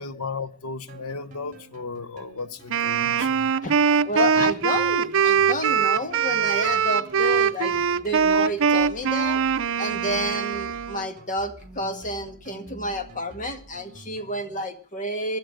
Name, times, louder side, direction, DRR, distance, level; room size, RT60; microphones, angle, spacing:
voice 1, 0.0-3.5, left 4 dB, 85° left, 1.0 m, -35 dB
sound 1, 0.9-14.6, right 2 dB, 40° right, 2.9 m, -47 dB
Wind instrument woodwind instrument, 2.7-11.1, right 7 dB, 65° right, 0.7 m, -22 dB
voice 2, 4.0-9.4 9.8-15.4, left 1 dB, 35° left, 1.8 m, -30 dB
16.0 x 12.0 x 6.4 m
head